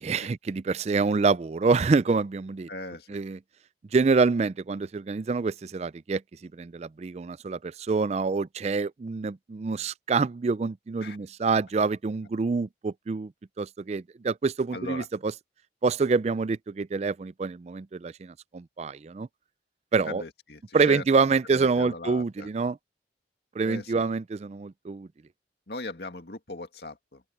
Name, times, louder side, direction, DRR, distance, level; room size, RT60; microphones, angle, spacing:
voice 1, 0.0-2.7 3.1-3.4 3.9-6.2 6.5-13.3 13.6-15.3 15.8-19.3 19.9-20.2 20.7-22.8 23.6-25.1, right 4 dB, 35° right, 0.3 m, -26 dB
voice 2, 2.7-3.2 11.0-11.2 14.7-15.1 20.0-22.5 23.6-24.1 25.7-27.3, left 2 dB, 65° left, 2.2 m, -39 dB
open air
head